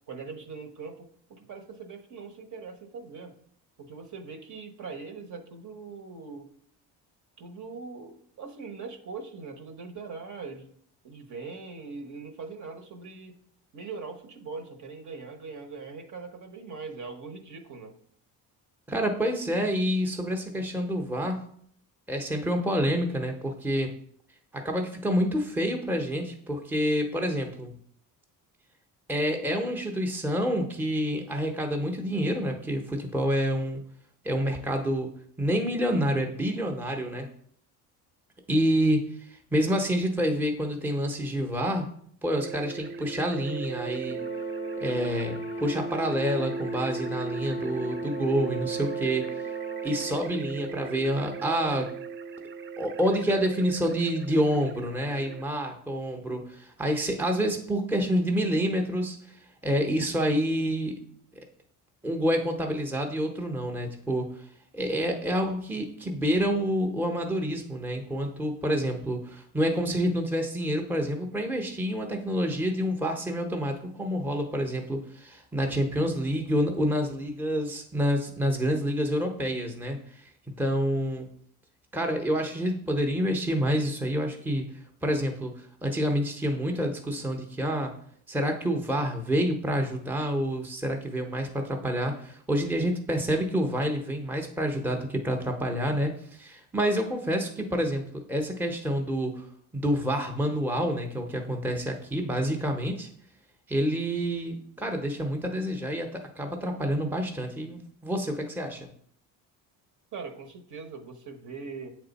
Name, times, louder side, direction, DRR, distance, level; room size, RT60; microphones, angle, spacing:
voice 1, 0.1-3.3 3.8-6.5 7.4-10.7 11.0-13.4 13.7-17.9 110.1-112.0, right 4 dB, 45° right, 5 dB, 1.1 m, -41 dB
voice 2, 18.9-21.4 22.1-23.9 24.5-27.7 29.1-33.8 34.2-35.1 35.4-37.3 38.5-41.9 42.2-44.2 44.8-49.3 49.8-51.9 52.8-59.4 59.6-60.9 62.0-64.3 64.7-80.3 80.6-81.3 81.9-84.7 85.0-87.9 88.3-99.5 99.7-103.1 103.7-108.9, equal, 5° right, 4 dB, 0.7 m, -28 dB
sound 1, 42.4-55.4, right 5 dB, 30° right, 0.4 m, -36 dB
Brass instrument, 44.1-50.5, left 9 dB, 35° left, 0.4 m, -44 dB
7.5 x 3.5 x 4.0 m, 0.62 s
cardioid pair, 95°, 40 cm